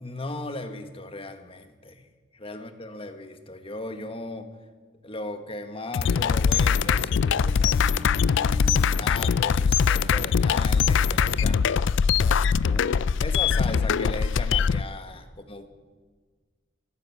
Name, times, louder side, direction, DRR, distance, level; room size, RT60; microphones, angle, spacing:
voice 1, 0.0-2.1 2.3-4.5 5.0-7.8 8.3-11.7 12.2-12.4 12.7-12.9 13.2-15.7, left 2 dB, 30° left, 7 dB, 1.4 m, -37 dB
sound 1, 5.9-14.8, left 6 dB, 65° left, 0.4 m, -22 dB
Bowed string instrument, 6.2-10.3, left 1 dB, 30° right, 5.5 m, -45 dB
16.0 x 10.0 x 8.4 m, 1.5 s
head